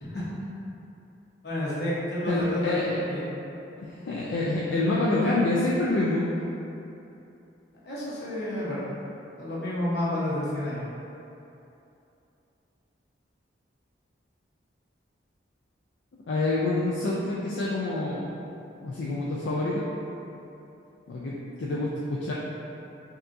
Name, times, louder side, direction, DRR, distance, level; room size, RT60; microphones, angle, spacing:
voice 1, 0.0-0.3 1.4-2.8 3.1-3.3 7.8-8.8 9.4-10.9, left 1 dB, 60° left, -8 dB, 1.0 m, -30 dB
voice 2, 2.3-3.0 3.8-6.3 16.3-18.3 18.8-19.9 21.1-22.3, left 2 dB, 75° left, -6 dB, 0.4 m, -27 dB
5.3 x 2.4 x 2.6 m, 2.8 s
head